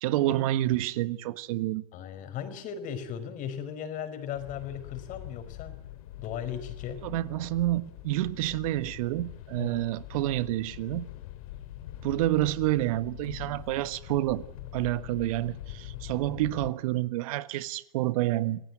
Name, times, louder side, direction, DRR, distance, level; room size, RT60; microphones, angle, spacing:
voice 1, 0.0-1.8 7.0-11.1 12.0-14.5 14.7-18.6, right 15 dB, 60° right, 1.4 m, -28 dB
voice 2, 1.9-5.7 6.2-7.0 9.6-9.9, left 8 dB, 40° left, 5.2 m, -37 dB
sound 1, 4.3-16.7, left 13 dB, 65° left, 2.7 m, -43 dB
27.5 x 17.0 x 9.3 m
hypercardioid pair, 110°, 20 cm